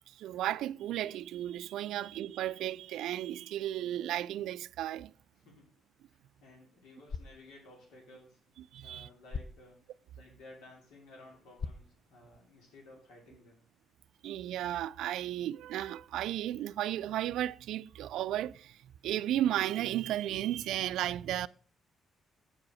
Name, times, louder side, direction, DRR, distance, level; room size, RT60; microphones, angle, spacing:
voice 1, 0.1-5.1 8.7-9.1 14.2-18.8 19.0-21.5, right 12 dB, 85° right, 0.3 m, -34 dB
voice 2, 5.3-5.7 6.1-8.4 8.8-9.8 10.1-13.6, left 2 dB, 90° left, 2.7 m, -55 dB
sound 1, 6.9-12.9, left 5 dB, 45° left, 0.6 m, -47 dB
8.3 x 4.8 x 6.3 m
cardioid pair, 90°, 0 cm